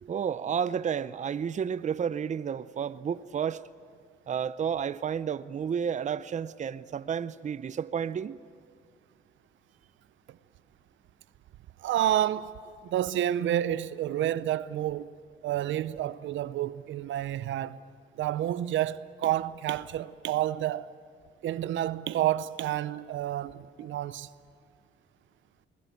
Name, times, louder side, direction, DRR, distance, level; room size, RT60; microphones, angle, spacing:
voice 1, 0.0-3.6 4.3-8.4, right 7 dB, 35° right, 0.6 m, -31 dB
voice 2, 11.8-12.5 12.8-15.1 15.4-17.8 18.2-20.9 21.4-24.3, right 12 dB, 75° right, 0.6 m, -29 dB
21.5 x 20.0 x 9.3 m
cardioid pair, 90°, 20 cm